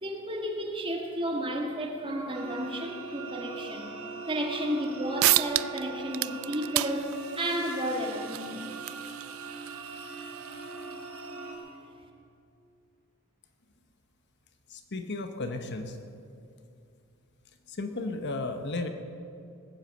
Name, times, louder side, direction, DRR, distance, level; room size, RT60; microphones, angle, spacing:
voice 1, 0.0-3.9 4.3-8.7 11.4-11.6, equal, 25° right, 1 dB, 1.9 m, -32 dB
sound 1, 2.3-11.6, right 4 dB, 85° right, 4.6 m, -41 dB
sound 2, 4.8-4.9 5.2-5.8 6.1-11.3, right 16 dB, 70° right, 0.4 m, -32 dB
voice 2, 14.7-16.0 17.7-18.9, left 2 dB, 55° left, 7 dB, 1.0 m, -34 dB
20.0 x 8.3 x 7.9 m, 2.6 s
head